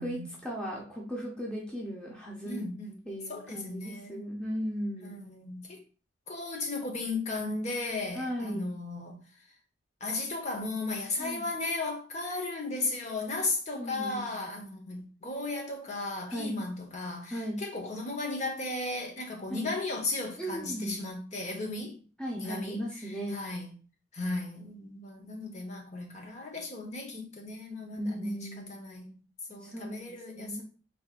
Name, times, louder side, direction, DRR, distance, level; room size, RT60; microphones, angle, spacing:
voice 1, 0.0-2.6 3.1-5.2 8.1-8.7 11.2-11.4 13.7-14.4 16.3-16.6 17.3-17.6 19.5-19.7 20.4-21.0 22.2-23.4 28.0-28.8 29.6-30.6, equal, 5° left, 0.8 m, -36 dB
voice 2, 2.4-3.0 3.3-4.2 5.0-5.8 6.3-9.2 10.0-22.0 22.4-23.7 24.1-29.1 29.5-30.6, left 2 dB, 35° left, 0.9 m, -35 dB
4.5 x 3.4 x 2.4 m
head